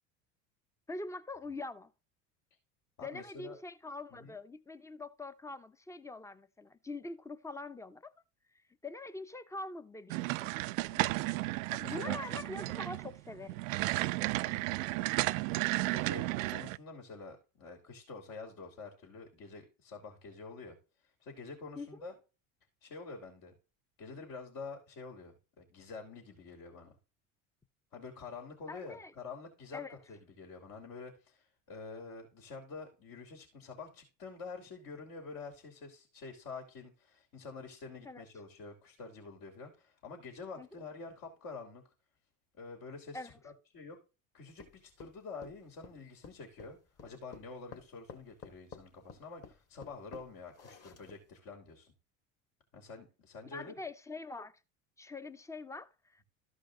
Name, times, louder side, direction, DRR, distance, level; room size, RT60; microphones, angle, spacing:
voice 1, 0.9-1.9 3.0-8.1 8.8-10.5 11.8-13.6 21.8-21.9 28.7-29.1 29.7-29.9 38.0-38.2 40.6-40.7 43.1-43.3 53.5-54.5 55.0-56.2, left 2 dB, 10° left, 0.7 m, -44 dB
voice 2, 3.0-3.6 4.1-4.4 10.9-12.4 14.4-14.7 15.7-20.8 21.2-22.1 22.8-23.5 24.0-26.9 27.9-41.8 42.6-44.0 44.3-51.9 52.7-53.8, left 4 dB, 60° left, 3.2 m, -47 dB
sound 1, 10.1-16.8, right 20 dB, 80° right, 0.5 m, -33 dB
sound 2, 44.6-51.4, left 6 dB, 35° left, 2.4 m, -52 dB
13.5 x 5.1 x 3.9 m
supercardioid pair, 90°, 40 cm